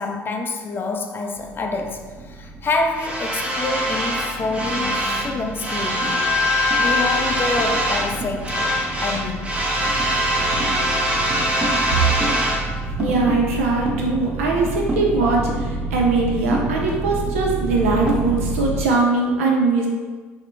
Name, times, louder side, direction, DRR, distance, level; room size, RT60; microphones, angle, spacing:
voice 1, 0.0-6.3 6.8-8.6 9.0-9.5, left 3 dB, 30° left, 3 dB, 0.3 m, -27 dB
sound 1, 1.4-18.8, equal, 15° right, 0.6 m, -23 dB
voice 2, 12.9-19.9, right 3 dB, 80° right, 0 dB, 0.4 m, -21 dB
2.8 x 2.0 x 2.6 m, 1.4 s
hypercardioid pair, 65°, 7 cm